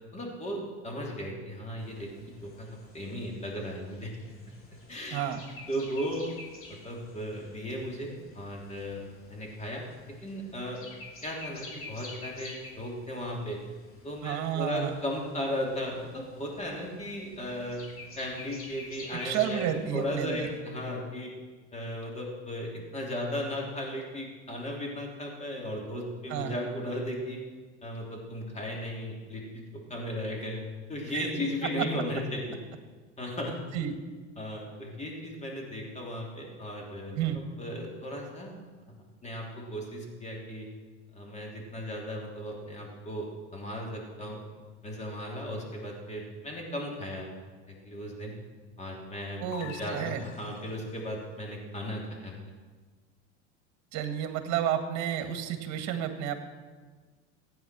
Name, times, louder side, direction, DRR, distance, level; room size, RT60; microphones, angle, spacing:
voice 1, 0.1-2.1 2.4-4.1 4.9-5.2 5.7-6.3 6.7-9.0 9.3-9.8 10.2-10.8 11.2-13.6 14.0-17.8 18.2-19.6 19.9-21.3 21.7-27.4 27.8-30.6 30.9-32.6 33.2-33.6 34.4-37.2 37.6-38.5 39.2-40.7 41.1-44.4 44.8-47.3 47.7-48.3 48.8-49.4 49.8-52.3, equal, 20° left, -1 dB, 3.3 m, -36 dB
sound 1, 1.8-20.6, left 3 dB, 40° left, 2.8 m, -49 dB
voice 2, 14.2-15.0 19.2-20.5 26.3-26.6 31.1-31.3 31.8-31.9 33.7-33.9 37.1-37.4 49.4-50.3 53.9-56.3, right 10 dB, 55° right, 7 dB, 1.9 m, -31 dB
sound 2, 49.5-51.1, left 8 dB, 70° left, 1.3 m, -46 dB
15.0 x 9.5 x 6.2 m, 1.4 s
supercardioid pair, 115°, 34 cm